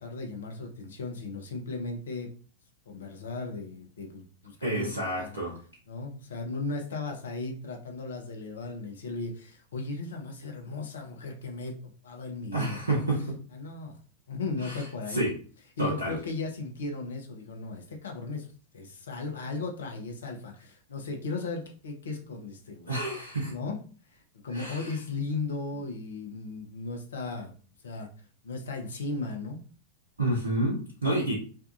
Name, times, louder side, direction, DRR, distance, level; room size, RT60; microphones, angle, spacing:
voice 1, 0.0-2.3 2.9-5.4 5.9-11.7 12.0-13.1 13.5-14.0 14.3-15.2 15.8-18.5 18.7-23.0 23.5-23.8 24.1-27.5 27.8-28.1 28.4-29.6, left 3 dB, 65° left, 3 dB, 0.5 m, -36 dB
voice 2, 4.6-5.6 12.5-13.4 14.6-15.3 15.8-16.2 22.9-23.5 24.5-24.9 30.2-31.3, right 1 dB, 75° right, -3 dB, 0.6 m, -29 dB
2.6 x 2.2 x 2.4 m, 0.40 s
figure-of-eight pair, 90°, 0 cm